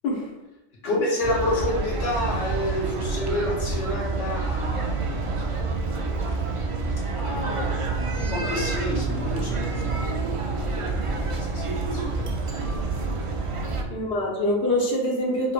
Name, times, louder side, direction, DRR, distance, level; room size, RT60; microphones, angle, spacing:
voice 1, 0.8-5.1 7.2-9.6 9.9-10.0 10.5-12.3, left 1 dB, 80° left, -4 dB, 1.7 m, -29 dB
sound 1, 1.2-13.8, right 3 dB, 50° right, 0.3 m, -28 dB
voice 2, 13.9-15.5, left 1 dB, 65° left, -2 dB, 1.2 m, -24 dB
5.7 x 3.1 x 2.4 m, 0.96 s
omnidirectional pair, 1.2 m